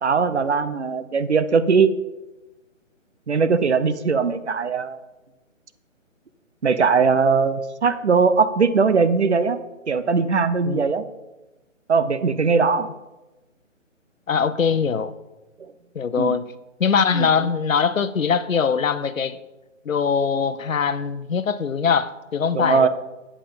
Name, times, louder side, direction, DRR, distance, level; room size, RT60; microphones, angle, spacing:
voice 1, 0.0-1.9 3.3-5.0 6.6-9.6 9.9-11.0 11.9-12.9 15.6-15.7 16.2-16.3 17.1-17.3 22.5-22.9, right 5 dB, 60° right, 12 dB, 0.8 m, -20 dB
voice 2, 14.3-15.1 15.9-16.4 16.8-19.4 19.8-22.9, left 6 dB, 90° left, 14 dB, 0.8 m, -22 dB
8.6 x 7.7 x 5.1 m, 1.1 s
hypercardioid pair, 175°, 39 cm